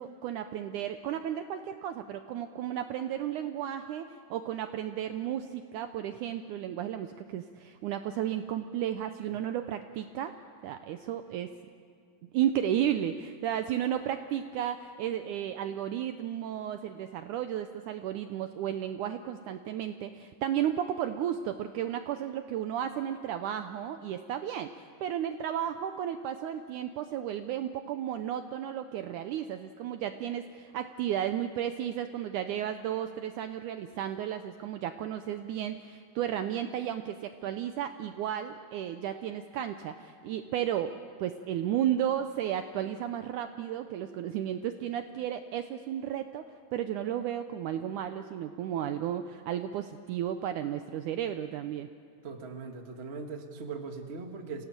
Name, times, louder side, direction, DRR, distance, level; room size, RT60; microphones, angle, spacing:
voice 1, 0.0-10.3 10.6-11.5 12.3-46.4 46.7-51.9, right 10 dB, 80° right, 9 dB, 1.8 m, -33 dB
voice 2, 52.2-54.6, right 4 dB, 50° right, 4 dB, 0.7 m, -40 dB
27.0 x 18.0 x 8.8 m, 2.3 s
omnidirectional pair, 4.3 m